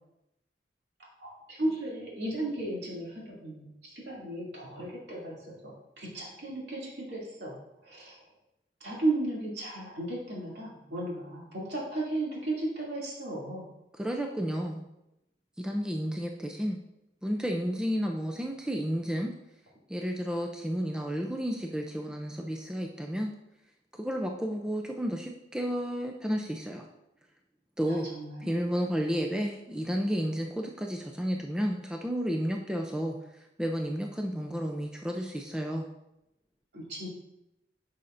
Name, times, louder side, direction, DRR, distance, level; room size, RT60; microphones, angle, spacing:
voice 1, 1.2-5.7 6.0-7.5 7.8-8.2 8.8-13.7 27.9-28.5 36.7-37.1, right 2 dB, 65° right, -5 dB, 2.6 m, -35 dB
voice 2, 14.0-14.9 15.6-16.8 17.2-19.3 19.9-23.3 24.0-26.9 27.8-28.1 28.4-33.2 33.6-35.9, equal, 5° right, 1 dB, 0.4 m, -32 dB
10.5 x 5.6 x 2.6 m, 0.89 s
head